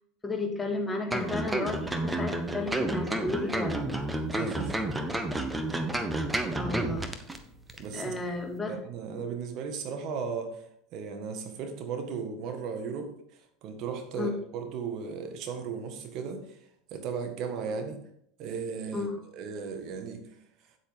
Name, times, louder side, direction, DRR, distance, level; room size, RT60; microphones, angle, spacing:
voice 1, 0.2-4.0 6.5-7.1 7.9-8.8 14.1-14.3 18.9-19.2, left 2 dB, 15° left, 3 dB, 1.9 m, -33 dB
sound 1, 1.1-7.4 7.7-7.8, right 1 dB, 10° right, 1.1 m, -30 dB
voice 2, 4.3-4.8 7.8-8.2 8.7-18.0 18.4-19.1 19.3-20.4, right 5 dB, 50° right, 5 dB, 1.6 m, -36 dB
8.7 x 8.2 x 3.6 m, 0.70 s
hypercardioid pair, 85°, 0 cm